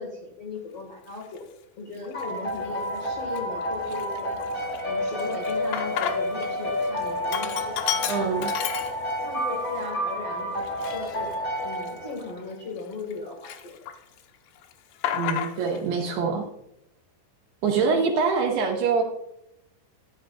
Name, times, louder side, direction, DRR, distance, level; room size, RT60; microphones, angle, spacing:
voice 1, 0.0-1.4 1.8-4.4 4.8-8.4 8.7-8.8 9.2-11.3 11.6-13.8 17.6-18.2, left 4 dB, 55° left, -2 dB, 1.7 m, -37 dB
Sink (filling or washing), 1.2-1.4 2.0-2.6 3.0-3.1 3.4-6.5 6.8-9.4 9.8-9.9 10.6-13.1 13.4-14.2 14.5-15.8, left 10 dB, 80° left, 2.7 m, -32 dB
sound 1, 2.1-12.5, equal, 40° left, 4.9 m, -30 dB
voice 2, 8.1-8.5 15.1-16.5 17.6-19.0, right 5 dB, 75° right, 1 dB, 2.6 m, -24 dB
12.5 x 10.5 x 2.4 m, 0.79 s
omnidirectional pair, 5.6 m